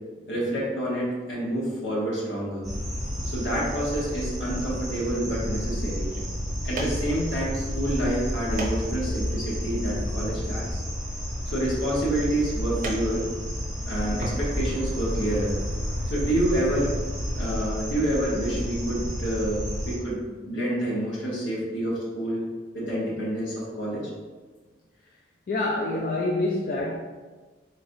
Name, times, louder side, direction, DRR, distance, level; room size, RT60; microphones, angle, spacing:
voice 1, 0.3-2.6 3.2-6.1 6.6-10.8 11.5-13.2 13.9-15.5 16.1-16.9 17.4-22.4 22.7-24.1, right 1 dB, 85° left, -5 dB, 1.0 m, -28 dB
sound 1, 2.6-20.0, equal, ahead, 0.8 m, -31 dB
sound 2, 5.9-14.4, right 2 dB, 45° right, 0.5 m, -40 dB
voice 2, 25.5-27.0, left 2 dB, 50° left, -2 dB, 0.3 m, -26 dB
3.8 x 3.2 x 2.6 m, 1.3 s
head